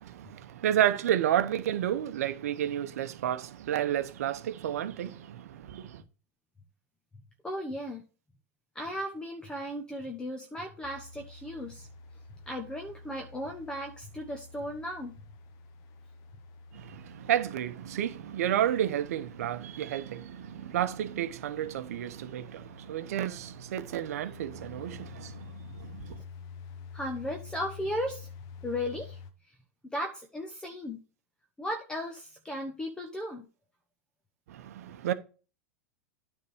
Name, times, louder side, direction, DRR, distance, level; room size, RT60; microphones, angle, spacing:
voice 1, 0.0-6.0 16.7-26.2 34.5-35.1, right 11 dB, 75° right, 0.8 m, -31 dB
voice 2, 7.4-8.0 8.7-11.9 12.5-15.2 26.9-28.3 28.6-29.2 29.4-29.5 29.9-31.0 31.6-33.5, left 1 dB, 10° left, 1.0 m, -36 dB
sound 1, 10.8-29.3, left 5 dB, 45° left, 1.0 m, -49 dB
9.5 x 3.6 x 4.9 m
hypercardioid pair, 110°, 8 cm